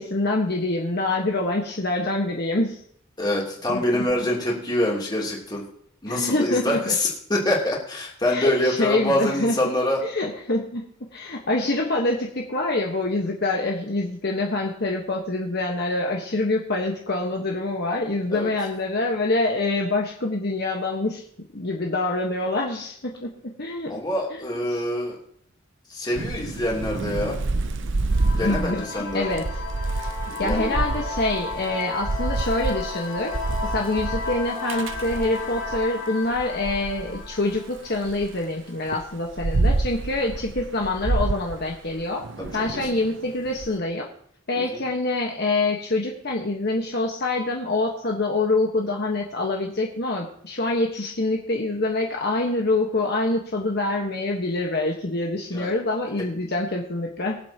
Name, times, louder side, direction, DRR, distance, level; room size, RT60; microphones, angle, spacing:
voice 1, 0.0-2.8 3.7-3.8 6.1-6.9 8.3-9.6 10.0-10.9 11.1-21.2 21.5-23.3 23.6-24.0 24.3-24.8 28.3-29.4 30.4-33.3 33.7-42.2 42.5-44.1 44.5-57.4, left 2 dB, 50° left, 0 dB, 1.4 m, -25 dB
voice 2, 3.2-5.6 6.0-10.0 18.3-18.5 23.9-25.2 25.9-27.4 28.4-29.3 30.3-30.7 42.4-42.5 44.6-44.8 55.5-55.7, left 1 dB, 20° left, -3 dB, 3.1 m, -25 dB
Thunder / Rain, 26.1-35.8 36.3-38.3 38.9-43.7, right 2 dB, 65° right, 0.7 m, -28 dB
sound 1, 28.1-38.5, left 3 dB, 75° left, 3.0 m, -34 dB
23.0 x 7.9 x 2.9 m, 0.65 s
head